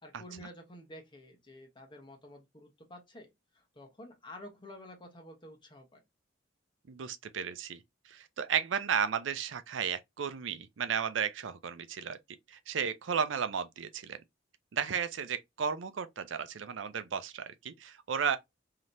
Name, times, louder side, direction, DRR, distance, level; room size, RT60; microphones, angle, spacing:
voice 1, 0.0-6.0, left 1 dB, 25° left, 0.9 m, -50 dB
voice 2, 6.9-7.8 8.1-12.2 12.5-14.2 14.7-18.4, right 7 dB, 75° right, 0.5 m, -34 dB
3.2 x 2.8 x 2.5 m
head